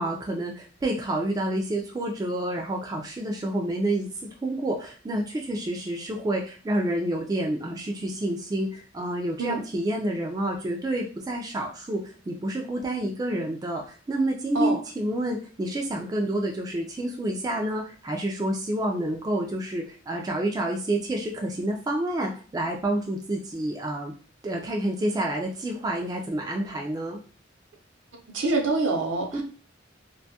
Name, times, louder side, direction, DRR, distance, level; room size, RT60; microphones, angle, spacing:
voice 1, 0.0-4.1 4.4-12.0 12.3-24.1 24.4-27.2 29.3-29.4, right 1 dB, 20° right, 0 dB, 0.3 m, -28 dB
voice 2, 28.3-29.4, right 3 dB, 70° right, 2 dB, 0.7 m, -25 dB
2.5 x 2.2 x 2.7 m, 0.38 s
head